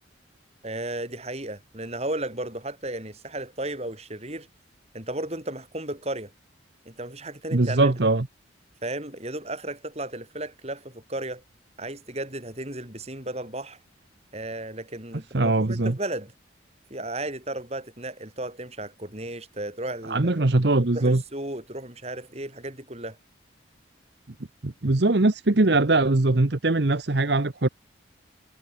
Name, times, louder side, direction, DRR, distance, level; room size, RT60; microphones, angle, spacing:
voice 1, 0.6-4.5 4.9-6.3 6.9-7.9 8.8-11.4 11.8-13.8 14.3-16.3 16.9-20.5 20.9-23.2, right 1 dB, 35° right, 5.3 m, -34 dB
voice 2, 7.5-8.3 15.3-16.0 20.1-21.2 24.6-27.7, right 2 dB, 60° right, 1.0 m, -21 dB
head